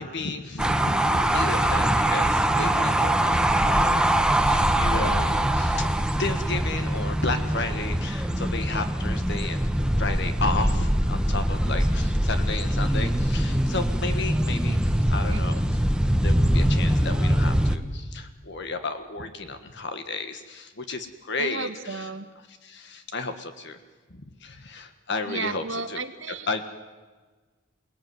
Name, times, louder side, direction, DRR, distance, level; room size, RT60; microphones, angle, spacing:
voice 1, 0.0-14.8 15.1-15.8 16.2-21.7 22.6-23.8 24.4-26.0 26.5-26.6, left 3 dB, 60° left, 8 dB, 1.5 m, -33 dB
sound 1, 0.6-17.8, right 1 dB, 5° right, 1.1 m, -23 dB
voice 2, 21.4-22.3 25.3-26.6, right 4 dB, 65° right, 8 dB, 2.0 m, -33 dB
28.5 x 19.5 x 9.4 m, 1.4 s
head